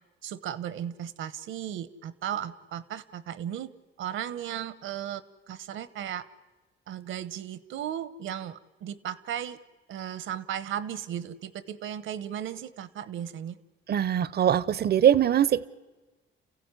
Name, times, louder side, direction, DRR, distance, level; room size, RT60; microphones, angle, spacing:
voice 1, 0.2-3.7 4.0-6.2 6.9-9.6 9.9-13.6, right 10 dB, 80° right, 17 dB, 1.1 m, -36 dB
voice 2, 13.9-15.7, right 10 dB, 55° right, 20 dB, 0.7 m, -22 dB
29.0 x 15.5 x 9.8 m, 1.2 s
cardioid pair, 90°, 20 cm